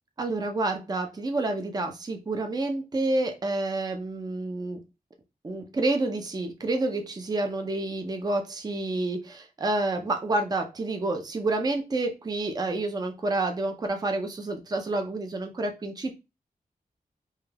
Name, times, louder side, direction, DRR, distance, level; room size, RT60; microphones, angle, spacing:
voice 1, 0.2-4.8 5.4-16.2, right 2 dB, 25° right, 4 dB, 0.4 m, -29 dB
2.3 x 2.2 x 3.2 m, 0.25 s
wide cardioid pair, 100°, 15 cm